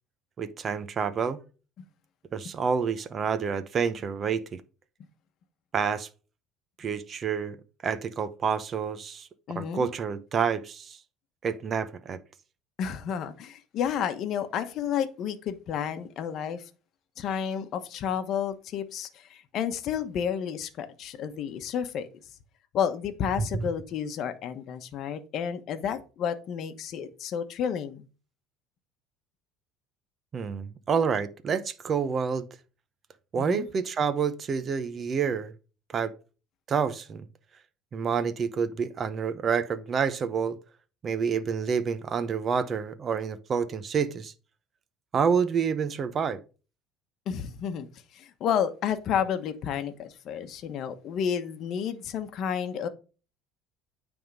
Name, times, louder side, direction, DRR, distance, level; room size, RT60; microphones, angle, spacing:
voice 1, 0.4-1.4 2.3-4.6 5.7-6.1 6.8-7.6 7.8-9.3 9.5-11.0 11.4-12.2 30.3-32.5 33.3-35.5 35.9-36.1 36.7-37.3 37.9-40.6 41.0-44.3 45.1-46.4, right 6 dB, 30° right, 0.8 m, -28 dB
voice 2, 9.5-9.9 12.8-16.7 17.2-22.1 22.7-28.0 33.3-33.7 47.3-47.9 48.1-52.9, left 8 dB, 50° left, 1.1 m, -31 dB
9.2 x 3.6 x 5.3 m
cardioid pair, 135°, 0 cm